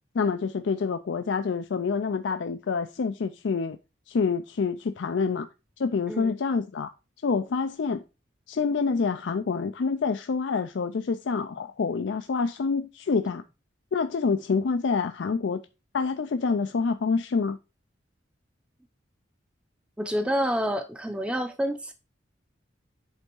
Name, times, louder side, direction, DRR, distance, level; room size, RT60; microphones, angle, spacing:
voice 1, 0.1-3.8 4.1-5.5 5.8-6.9 7.2-8.0 8.5-13.4 13.9-15.6 15.9-17.6, left 5 dB, 70° left, 0.4 m, -27 dB
voice 2, 6.1-6.4 20.0-21.9, equal, 5° right, 0.6 m, -28 dB
8.2 x 3.5 x 4.5 m
head